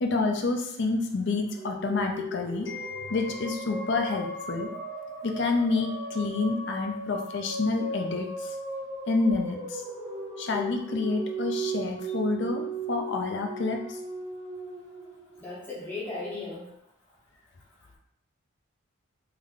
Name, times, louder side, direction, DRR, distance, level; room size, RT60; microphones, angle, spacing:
voice 1, 0.0-4.7 5.2-8.6 9.1-9.8 10.4-12.6 12.9-14.0, left 3 dB, 55° left, 3 dB, 0.4 m, -28 dB
sound 1, 1.5-15.9, right 1 dB, 25° right, 0.7 m, -37 dB
voice 2, 15.4-16.7, left 3 dB, 10° left, -9 dB, 0.7 m, -36 dB
3.2 x 2.1 x 3.6 m, 0.76 s
head